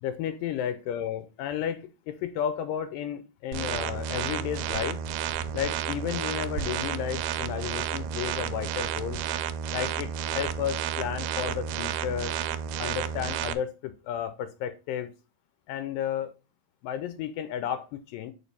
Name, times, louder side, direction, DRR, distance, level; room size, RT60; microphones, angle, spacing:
voice 1, 0.0-5.0 5.5-9.2 9.7-12.3 12.8-15.1 15.7-16.3 16.8-18.3, left 9 dB, 85° left, 2.2 m, -33 dB
sound 1, 3.5-13.5, right 9 dB, 85° right, 2.2 m, -31 dB
5.1 x 4.5 x 4.1 m
omnidirectional pair, 4.0 m